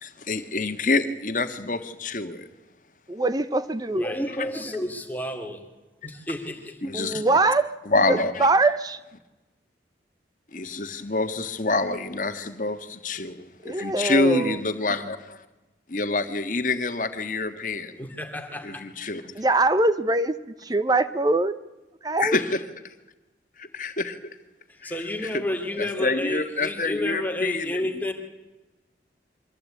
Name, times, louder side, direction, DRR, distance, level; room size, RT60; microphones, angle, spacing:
voice 1, 0.0-2.5 6.8-7.2 7.8-8.5 10.5-15.4 15.9-17.9 18.6-19.2 22.2-22.6 23.6-24.2 24.8-24.9 25.2-25.4 25.8-27.8, left 3 dB, 45° left, 9 dB, 1.6 m, -27 dB
voice 2, 3.1-4.1 6.9-7.7 8.1-9.0 13.6-14.6 19.3-21.6 22.0-22.4, right 2 dB, 20° right, 13 dB, 0.7 m, -23 dB
voice 3, 3.9-5.6 6.0-6.9 18.0-18.8 24.7-28.1, left 1 dB, 10° left, 4 dB, 2.4 m, -31 dB
24.0 x 16.0 x 8.6 m, 1.1 s
head